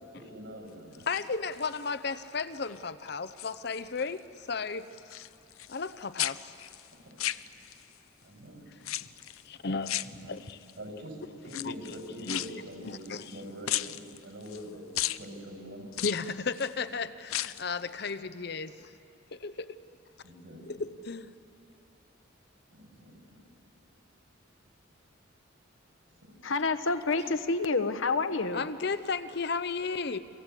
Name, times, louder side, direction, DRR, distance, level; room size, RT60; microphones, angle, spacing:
voice 1, 0.2-1.1 6.9-7.1 8.2-8.6 10.0-10.4 10.8-11.2 11.4-14.9 15.1-15.8 20.2-20.6 22.7-23.1 26.2-26.3, equal, 60° right, 2 dB, 6.9 m, -44 dB
sound 1, 0.9-1.9 2.4-2.8 3.1-4.1 4.4-5.9 6.2-8.0 8.8-9.4 9.8-10.7 11.4-13.4 13.7-14.6 15.0-15.2 15.9-16.7 17.2-17.7 18.0-18.1, left 14 dB, 85° left, 0.6 m, -35 dB
voice 2, 1.1-4.9 5.7-6.6 9.4-10.0 10.3-10.6 11.6-11.7 12.2-12.4 12.8-13.4 16.0-18.9 19.3-19.8 20.7-21.3 28.5-30.2, left 4 dB, 50° left, 13 dB, 0.7 m, -34 dB
voice 3, 26.4-28.6, left 3 dB, 70° left, 9 dB, 1.1 m, -28 dB
30.0 x 23.5 x 8.3 m, 2.7 s
head